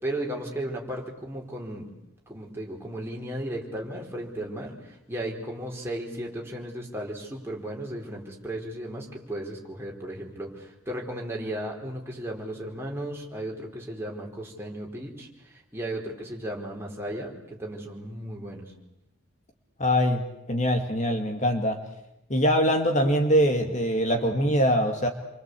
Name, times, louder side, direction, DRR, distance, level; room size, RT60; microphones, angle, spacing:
voice 1, 0.0-1.9 2.3-18.7, right 1 dB, 10° right, -1 dB, 4.9 m, -35 dB
voice 2, 19.8-20.2 20.5-21.8 22.3-25.1, equal, 35° left, 5 dB, 2.0 m, -23 dB
28.5 x 24.5 x 8.4 m, 0.88 s
head